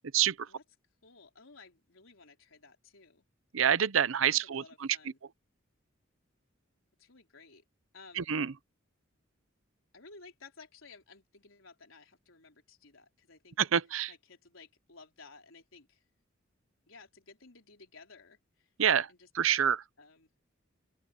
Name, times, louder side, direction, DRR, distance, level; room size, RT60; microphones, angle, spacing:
voice 1, 0.1-0.5 3.5-4.9 8.2-8.5 13.6-14.1 18.8-19.1 19.3-19.8, right 8 dB, 80° right, 0.7 m, -27 dB
voice 2, 1.0-3.3 4.3-5.2 7.0-7.6 7.9-8.3 9.9-13.6 14.1-16.0 16.9-18.7 19.1-19.3 20.0-20.3, left 4 dB, 85° left, 4.0 m, -56 dB
open air
head